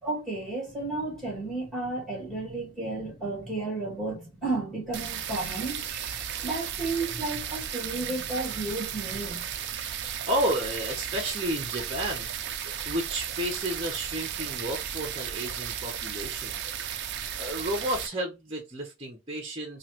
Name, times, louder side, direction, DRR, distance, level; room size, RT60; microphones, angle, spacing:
voice 1, 0.0-9.5, right 2 dB, ahead, 2.0 m, -33 dB
sound 1, 4.9-18.1, right 9 dB, 55° right, 0.5 m, -35 dB
voice 2, 9.9-16.6 17.4-19.8, right 1 dB, 25° right, 0.8 m, -32 dB
3.1 x 2.5 x 2.8 m
head